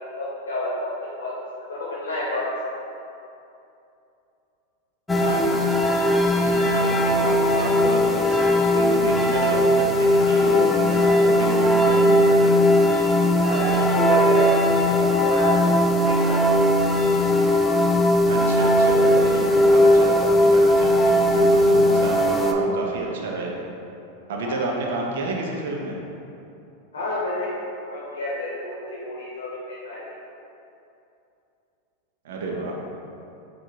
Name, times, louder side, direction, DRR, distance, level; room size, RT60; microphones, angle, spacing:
voice 1, 0.1-1.3 1.6-2.5 6.2-6.5 13.4-15.7 16.0-16.4 24.4-24.7 26.9-30.0, left 1 dB, 80° left, -6 dB, 0.8 m, -30 dB
sound 1, 5.1-22.5, left 1 dB, 10° left, 0.3 m, -19 dB
voice 2, 5.2-5.5 5.8-6.0 6.4-12.6 18.3-23.6 24.3-26.0 32.2-32.8, right 2 dB, 70° right, -1 dB, 0.6 m, -30 dB
4.7 x 2.4 x 2.8 m, 2.7 s
hypercardioid pair, 100°, 0 cm